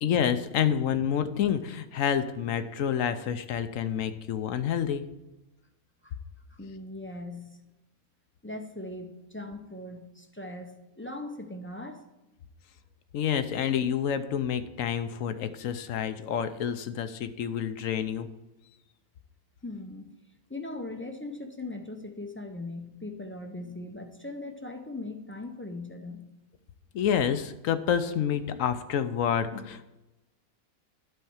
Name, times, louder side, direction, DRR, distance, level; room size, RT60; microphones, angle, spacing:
voice 1, 0.0-5.0 13.1-18.3 26.9-29.9, left 8 dB, 70° left, 11 dB, 1.0 m, -28 dB
voice 2, 6.5-7.6 8.4-12.1 19.6-20.1 20.5-26.3, left 2 dB, 15° left, 4 dB, 0.4 m, -39 dB
11.5 x 4.5 x 7.1 m, 0.99 s
omnidirectional pair, 1.5 m